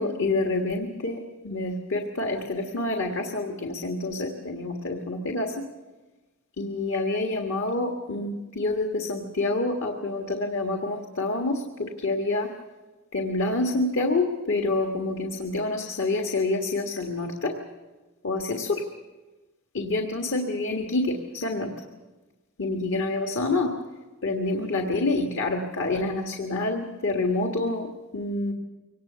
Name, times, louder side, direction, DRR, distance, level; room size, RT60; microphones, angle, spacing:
voice 1, 0.0-5.5 6.6-12.5 13.1-17.6 18.2-18.8 19.7-21.7 22.6-23.7 24.2-28.5, left 2 dB, 65° left, 3 dB, 1.7 m, -27 dB
23.5 x 18.5 x 6.9 m, 1.2 s
head